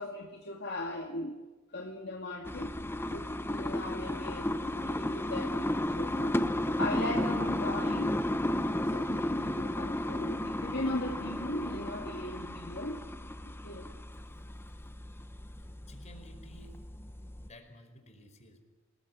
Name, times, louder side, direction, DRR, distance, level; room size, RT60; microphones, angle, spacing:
voice 1, 0.0-1.4 1.7-2.7 3.1-6.4 6.7-8.2 8.9-13.0 13.6-13.9, left 1 dB, 55° left, 2.3 m, -38 dB
sound 1, 2.4-17.5, left 1 dB, 10° left, 0.9 m, -33 dB
voice 2, 15.6-16.9 17.4-18.6, equal, 35° left, 4.9 m, -54 dB
27.5 x 20.5 x 9.7 m
head